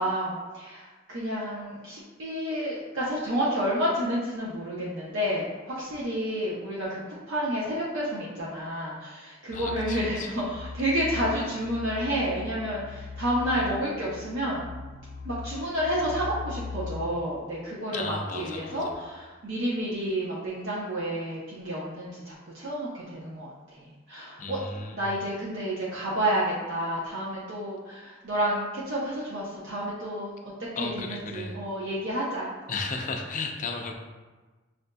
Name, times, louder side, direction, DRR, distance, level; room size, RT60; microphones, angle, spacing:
voice 1, 0.0-14.6 15.2-24.6 24.9-30.3 30.8-32.5, equal, 70° right, -6 dB, 0.6 m, -30 dB
sound 1, 9.5-17.2, left 4 dB, 80° left, 0.7 m, -39 dB
voice 2, 9.5-10.3 17.9-19.1 24.4-25.1 30.8-31.6 32.7-33.9, left 4 dB, 40° left, 3 dB, 0.4 m, -34 dB
6.3 x 2.5 x 2.2 m, 1.3 s
head